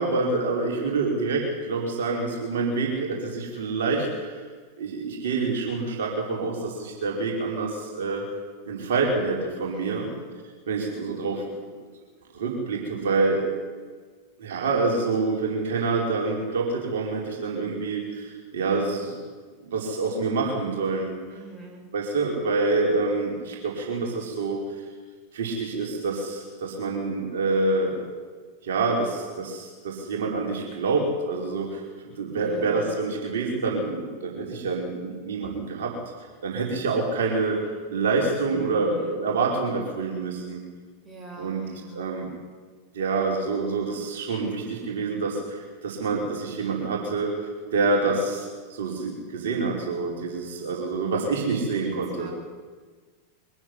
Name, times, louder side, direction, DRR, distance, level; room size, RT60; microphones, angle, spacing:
voice 1, 0.0-4.4 4.8-8.2 8.7-10.1 10.7-11.5 12.3-13.4 14.4-19.1 19.6-21.1 21.9-24.6 25.3-27.9 28.6-31.8 32.2-35.9 36.4-37.6 37.9-40.6 41.4-41.6 41.9-42.3 42.9-52.3, right 3 dB, 60° right, -1 dB, 5.2 m, -27 dB
voice 2, 9.7-10.3 21.3-21.8 32.4-32.9 38.4-39.2 41.0-42.1 51.9-52.3, right 4 dB, 15° right, 0 dB, 6.0 m, -43 dB
23.5 x 15.0 x 10.0 m, 1.5 s
figure-of-eight pair, 90°, 0 cm